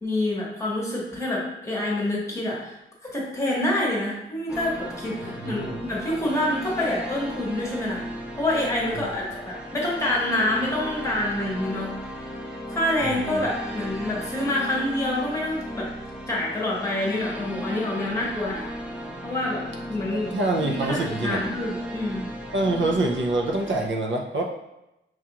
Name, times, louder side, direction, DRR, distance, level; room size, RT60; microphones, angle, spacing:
voice 1, 0.0-2.8 3.0-8.0 8.4-11.9 12.7-15.9 16.3-18.6 19.2-19.6 19.9-20.4 20.6-22.3, left 1 dB, 15° left, -5 dB, 1.0 m, -27 dB
sound 1, 4.5-23.9, equal, 5° right, 0.4 m, -36 dB
voice 2, 5.2-5.8 8.9-9.1 13.0-13.4 20.1-21.4 22.5-24.4, right 2 dB, 65° right, 1 dB, 0.5 m, -26 dB
5.9 x 2.4 x 2.8 m, 0.91 s
wide cardioid pair, 170°, 21 cm